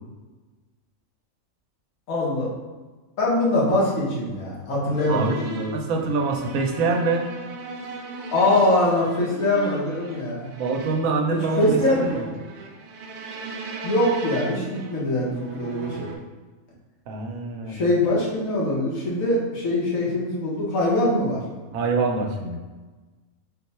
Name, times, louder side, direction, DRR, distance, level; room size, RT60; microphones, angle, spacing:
voice 1, 2.1-2.5 3.2-6.1 8.3-10.5 11.3-12.0 13.8-16.1 17.7-21.4, left 1 dB, 80° left, -5 dB, 1.5 m, -23 dB
sound 1, 5.0-16.2, right 4 dB, 65° right, 0.7 m, -37 dB
voice 2, 5.7-7.2 10.6-12.3 17.1-17.8 21.7-22.6, right 4 dB, 85° right, 2 dB, 1.0 m, -25 dB
4.2 x 2.2 x 4.1 m, 1.3 s
omnidirectional pair, 1.4 m